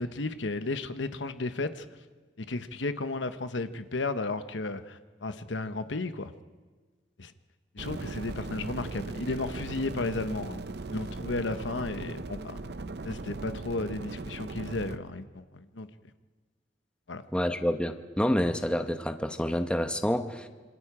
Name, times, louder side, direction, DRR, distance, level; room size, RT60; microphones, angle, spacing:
voice 1, 0.0-1.9 2.4-6.3 7.2-7.3 7.7-10.6 10.9-12.5 13.0-15.9 17.1-17.2, left 2 dB, 75° left, 10 dB, 1.0 m, -33 dB
sound 1, 7.8-15.0, right 3 dB, 60° right, 0.7 m, -38 dB
voice 2, 17.3-20.5, equal, 5° left, 7 dB, 1.0 m, -28 dB
26.5 x 26.0 x 5.0 m, 1.4 s
head